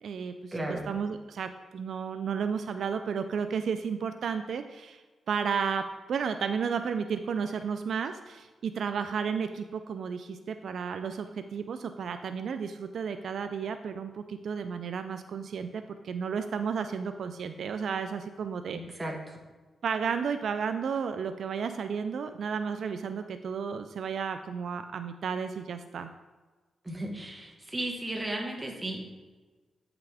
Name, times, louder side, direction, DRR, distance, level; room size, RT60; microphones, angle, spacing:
voice 1, 0.0-5.0 5.3-19.0 19.8-26.1, right 6 dB, 70° right, 8 dB, 0.3 m, -33 dB
voice 2, 0.5-0.8 18.7-19.4 26.8-29.0, right 1 dB, 15° right, 1 dB, 1.3 m, -35 dB
8.7 x 5.8 x 3.4 m, 1.3 s
cardioid pair, 100°, 0 cm